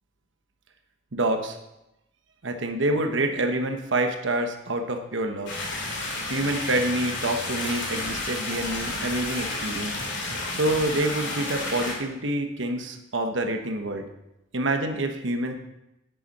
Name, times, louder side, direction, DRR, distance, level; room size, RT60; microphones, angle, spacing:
voice 1, 1.1-1.6 2.4-5.5 6.3-10.0 10.5-14.1 14.5-15.6, right 1 dB, 70° right, 5 dB, 1.1 m, -27 dB
sound 1, 5.5-11.9, left 2 dB, 65° left, 3.2 m, -31 dB
9.9 x 9.2 x 4.2 m, 0.89 s
head